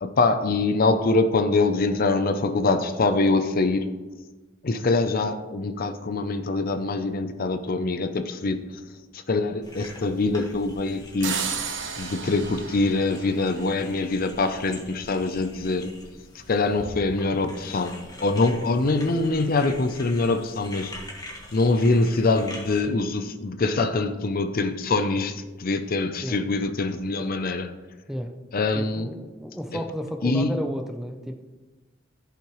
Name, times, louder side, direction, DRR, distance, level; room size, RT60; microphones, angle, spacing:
voice 1, 0.0-3.9 4.6-8.6 9.1-11.3 12.0-15.9 16.5-17.9 18.2-20.9 21.5-27.7 28.5-29.1 30.2-30.5, left 3 dB, 50° left, 9 dB, 0.6 m, -24 dB
sound 1, 9.6-22.8, left 1 dB, 20° left, 1.6 m, -44 dB
sound 2, 11.2-14.1, right 6 dB, 65° right, 1.0 m, -33 dB
voice 2, 28.7-31.4, equal, ahead, 5 dB, 0.6 m, -33 dB
14.0 x 5.8 x 3.1 m, 1.2 s
head